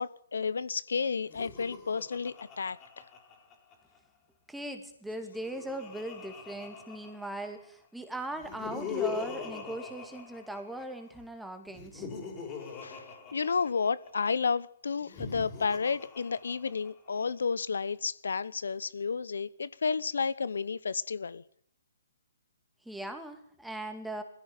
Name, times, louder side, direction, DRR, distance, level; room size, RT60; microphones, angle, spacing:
voice 1, 0.0-2.8 12.8-13.0 13.3-21.4, left 5 dB, 85° left, 0.9 m, -31 dB
Laughter, 1.2-4.0 5.1-7.7 8.3-11.0 11.7-14.1 15.0-17.1, left 6 dB, 20° left, 4.2 m, -42 dB
voice 2, 4.5-12.1 22.8-24.2, right 1 dB, ahead, 2.3 m, -39 dB
20.5 x 15.5 x 9.1 m
hypercardioid pair, 155°, 0 cm